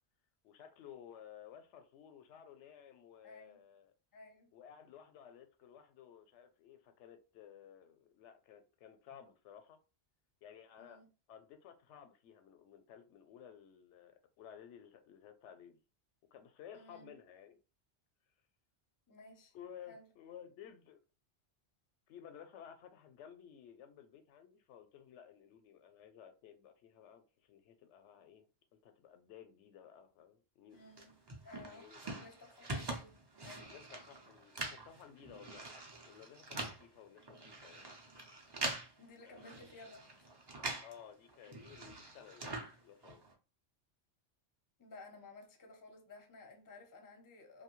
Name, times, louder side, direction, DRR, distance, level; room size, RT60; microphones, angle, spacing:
voice 1, 0.4-3.9 4.5-9.8 10.4-11.0 11.3-15.8 16.3-17.6 19.5-21.0 22.1-30.9 31.6-32.3 33.7-35.7 36.0-37.9 39.2-39.6 40.8-43.2, left 9 dB, 85° left, 0.9 m, -56 dB
voice 2, 3.2-3.6 4.1-4.5 10.8-11.1 16.7-17.1 19.1-19.5 19.9-20.1 30.7-31.9 32.2-33.7 39.0-40.3 44.8-47.6, left 3 dB, 25° left, 0.5 m, -56 dB
sound 1, 31.0-41.0 41.3-43.3, right 2 dB, 35° right, 0.4 m, -44 dB
2.7 x 2.2 x 2.9 m
omnidirectional pair, 1.2 m